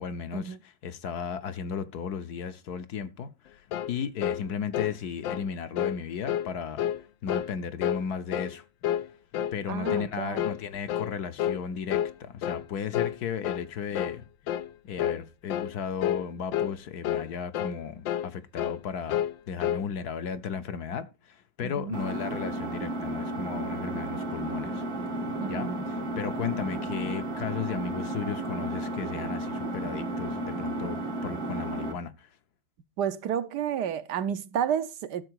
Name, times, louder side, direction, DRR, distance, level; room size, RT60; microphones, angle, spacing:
voice 1, 0.0-6.9 7.2-8.6 9.5-14.3 14.8-19.2 19.5-24.8 25.5-32.3, left 7 dB, 65° left, 1.2 m, -35 dB
sound 1, 3.7-4.0 4.2-4.4 4.7-5.0 5.2-5.5 5.8-6.0 6.3-6.5 6.8-7.0 7.3-7.5 7.8-8.0 8.3-8.6 8.8-9.1 9.3-9.6 9.9-10.1 10.4-10.6 10.9-11.1 11.4-11.6 11.9-12.1 12.4-12.7 12.9-13.2 13.4-13.7 14.0-14.2 14.5-14.7 15.0-15.2 15.5-15.7 16.0-16.3 16.5-16.7 17.0-17.3 17.5-17.8 18.1-18.3 18.6-18.8 19.1-19.9, left 11 dB, 85° left, 1.5 m, -29 dB
voice 2, 9.7-10.4 21.6-22.0 25.4-25.8 33.0-35.2, right 8 dB, 70° right, 1.3 m, -31 dB
Engine, 21.9-31.9, right 1 dB, 85° right, 2.6 m, -33 dB
12.5 x 7.1 x 4.6 m
omnidirectional pair, 2.0 m